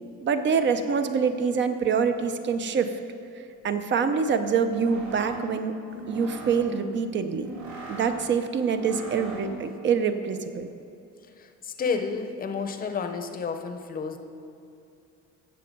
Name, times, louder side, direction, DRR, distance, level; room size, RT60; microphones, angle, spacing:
voice 1, 0.2-2.9 3.6-5.7 6.1-7.6 7.9-10.7, right 6 dB, 40° right, 8 dB, 0.6 m, -25 dB
sound 1, 4.5-9.8, right 1 dB, 70° right, 2.2 m, -40 dB
voice 2, 11.4-14.2, left 5 dB, 30° left, 6 dB, 0.7 m, -31 dB
15.5 x 6.9 x 5.2 m, 2.7 s
cardioid pair, 180°, 30 cm